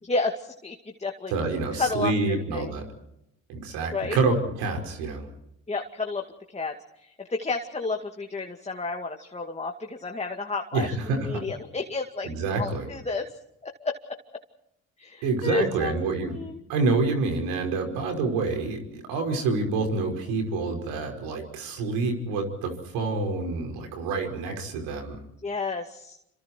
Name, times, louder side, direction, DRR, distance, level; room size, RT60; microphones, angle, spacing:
voice 1, 0.0-1.3 1.7-2.1 2.5-2.7 3.9-4.2 5.7-12.3 12.6-13.3 13.6-14.2 15.0-16.6 25.4-26.2, left 3 dB, 20° left, 3 dB, 2.3 m, -31 dB
voice 2, 1.3-2.8 3.5-5.3 10.7-11.4 12.3-12.9 15.2-16.4 16.7-25.2, right 3 dB, 80° right, 4 dB, 5.5 m, -27 dB
28.0 x 26.5 x 4.6 m, 0.83 s
hypercardioid pair, 60°, 35 cm